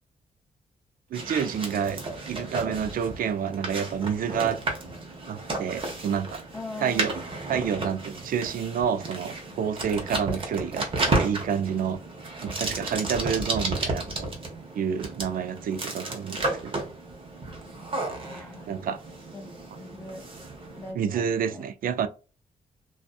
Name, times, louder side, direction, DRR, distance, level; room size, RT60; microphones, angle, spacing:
sound 1, 1.1-20.9, right 2 dB, 35° right, 0.8 m, -33 dB
voice 1, 1.1-2.0 2.3-4.6 5.3-6.4 6.8-7.1 7.5-12.0 12.4-14.3 14.7-16.9 18.7-19.0 20.9-22.1, right 7 dB, 65° right, 0.4 m, -29 dB
voice 2, 6.5-7.2 18.2-18.7 19.3-20.2 20.8-21.7, left 2 dB, 15° left, 0.4 m, -41 dB
2.6 x 2.3 x 2.3 m
wide cardioid pair, 140°, 15 cm